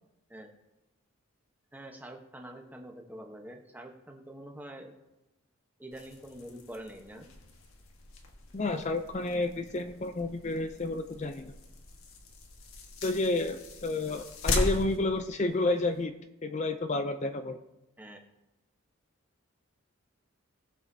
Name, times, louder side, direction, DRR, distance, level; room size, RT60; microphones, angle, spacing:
voice 1, 1.7-4.9 5.8-7.2 14.0-14.1 18.0-18.2, right 1 dB, 10° right, 2 dB, 1.1 m, -45 dB
sound 1, 5.9-16.0, left 2 dB, 85° left, 1.5 m, -39 dB
voice 2, 8.5-11.5 13.0-16.1 16.4-17.6, left 2 dB, 35° left, 7 dB, 0.5 m, -30 dB
19.0 x 7.4 x 2.8 m, 0.95 s
head